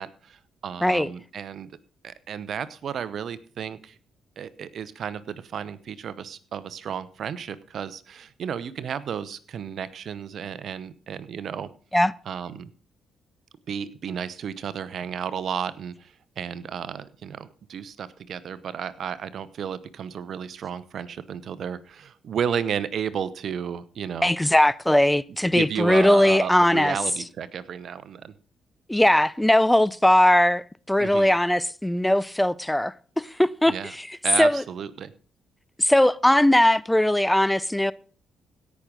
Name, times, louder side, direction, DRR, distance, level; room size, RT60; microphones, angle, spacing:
voice 1, 0.0-1.7 2.0-3.9 4.4-11.7 12.3-12.7 13.7-24.3 25.5-28.3 31.0-31.3 33.7-33.9 34.2-35.1, right 8 dB, 65° right, 0.9 m, -33 dB
voice 2, 24.2-27.0 28.9-34.6 35.8-37.9, left 1 dB, 10° left, 0.5 m, -20 dB
17.0 x 6.2 x 5.1 m
supercardioid pair, 55°, 0 cm